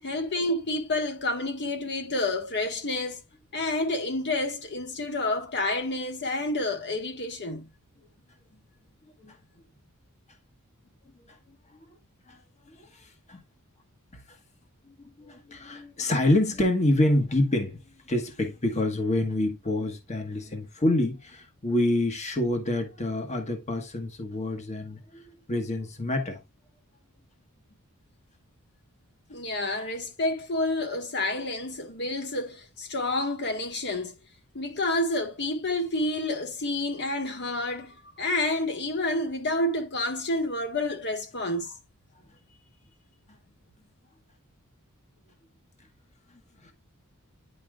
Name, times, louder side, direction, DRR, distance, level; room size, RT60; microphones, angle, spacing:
voice 1, 0.0-3.2 3.5-7.7 29.3-34.1 34.5-41.7, left 2 dB, 50° left, 1.4 m, -29 dB
voice 2, 12.7-13.4 14.1-14.4 15.0-26.4 46.6-46.7, left 1 dB, 30° left, 1.3 m, -27 dB
9.8 x 5.5 x 2.4 m
head